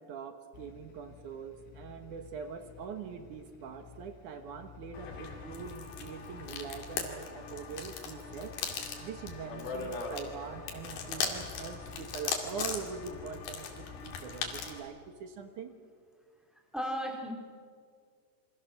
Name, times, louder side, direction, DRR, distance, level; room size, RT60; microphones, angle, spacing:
voice 1, 0.0-8.6 9.0-15.8, right 6 dB, 65° right, 7 dB, 2.2 m, -43 dB
sound 1, 0.5-14.7, left 7 dB, 90° left, 4.0 m, -53 dB
sound 2, 4.9-14.8, left 5 dB, 65° left, 4.2 m, -39 dB
voice 2, 16.5-17.3, equal, ahead, 1 dB, 3.6 m, -36 dB
28.0 x 24.5 x 7.2 m, 2.1 s
omnidirectional pair, 4.9 m